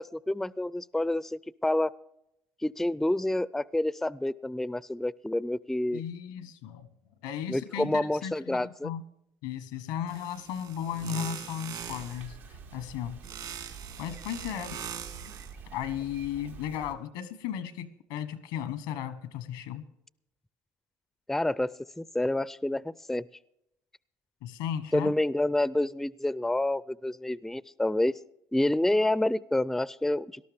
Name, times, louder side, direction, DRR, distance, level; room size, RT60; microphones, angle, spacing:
voice 1, 0.0-1.9 2.6-6.0 7.5-8.9 21.3-23.3 24.9-28.1 28.5-30.5, left 1 dB, 5° left, 20 dB, 0.4 m, -28 dB
voice 2, 5.9-6.9 7.2-9.0 9.4-12.4 12.7-13.2 14.0-14.8 15.7-19.8 24.4-25.1, left 9 dB, 85° left, 14 dB, 1.2 m, -35 dB
sound 1, 10.1-12.3 13.2-15.5, right 8 dB, 65° right, 1.9 m, -41 dB
Bicycle, 11.8-16.9, right 6 dB, 90° right, 1.4 m, -47 dB
18.5 x 12.5 x 3.5 m, 0.82 s
hypercardioid pair, 65°, 8 cm